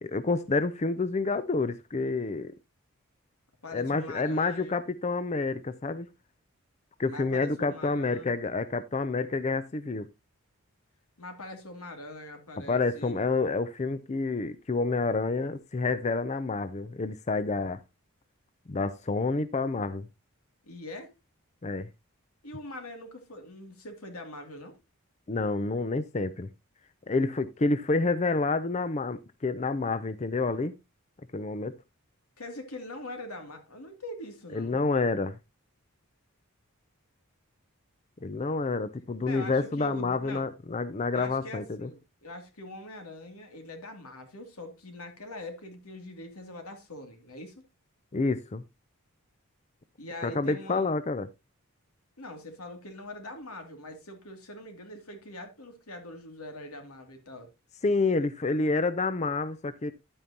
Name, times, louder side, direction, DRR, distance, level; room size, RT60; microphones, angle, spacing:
voice 1, 0.0-2.5 3.7-6.1 7.0-10.1 12.7-17.8 18.7-20.1 21.6-21.9 25.3-26.5 27.1-30.7 31.3-31.8 34.5-35.4 38.2-41.9 48.1-48.6 50.2-51.3 57.8-59.9, left 3 dB, 30° left, 0.5 m, -28 dB
voice 2, 3.6-4.7 7.0-8.3 11.2-13.3 20.6-21.1 22.4-24.7 32.4-34.8 39.2-40.4 41.1-47.6 50.0-50.9 52.2-57.5, left 1 dB, 85° left, 2.6 m, -43 dB
11.0 x 8.7 x 2.9 m
head